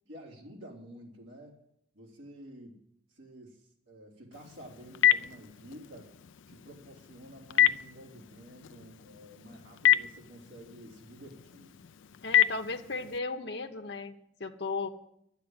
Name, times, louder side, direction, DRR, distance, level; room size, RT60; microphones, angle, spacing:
voice 1, 0.1-1.6 1.9-2.8 3.1-3.6 3.9-6.1 6.5-11.7, equal, 80° right, -1 dB, 3.5 m, -50 dB
Telephone, 4.3-13.2, left 11 dB, 80° left, 0.5 m, -30 dB
voice 2, 12.2-14.9, left 3 dB, 60° left, 4 dB, 1.1 m, -36 dB
11.5 x 8.2 x 9.7 m, 0.72 s
head